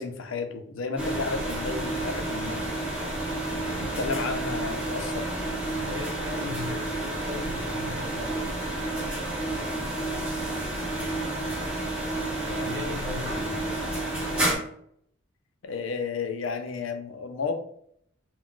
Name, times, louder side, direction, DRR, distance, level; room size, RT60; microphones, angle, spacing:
voice 1, 0.0-2.7 3.7-5.2 14.0-14.1 15.6-17.5, left 4 dB, 80° left, 0.4 m, -32 dB
sound 1, 1.0-14.6, right 2 dB, 5° right, 0.7 m, -30 dB
voice 2, 5.8-8.6 12.4-13.9, left 2 dB, 70° right, 1.0 m, -38 dB
2.3 x 2.2 x 3.6 m
head